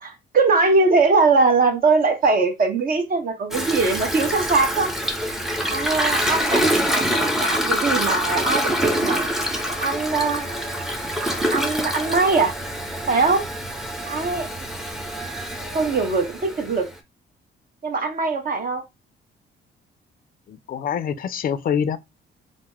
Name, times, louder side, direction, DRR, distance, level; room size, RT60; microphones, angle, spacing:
voice 1, 0.0-4.9 5.7-6.7 6.9-9.2 9.8-10.6 11.5-12.5 13.1-13.4 14.1-14.5 15.7-16.9 17.8-18.8, right 3 dB, 45° right, 0.9 m, -21 dB
Toilet flush, 3.5-16.9, equal, ahead, 0.6 m, -25 dB
voice 2, 20.5-22.0, left 7 dB, 45° left, 0.4 m, -25 dB
2.8 x 2.0 x 3.4 m
cardioid pair, 90°, 20 cm